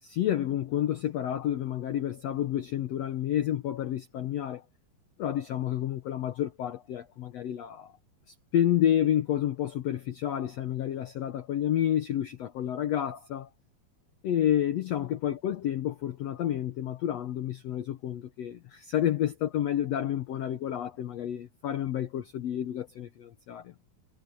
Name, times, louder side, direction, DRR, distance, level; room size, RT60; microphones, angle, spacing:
voice 1, 0.0-4.6 5.2-7.9 8.5-13.5 14.2-23.7, left 11 dB, 90° left, 1.4 m, -30 dB
omnidirectional pair, 4.3 m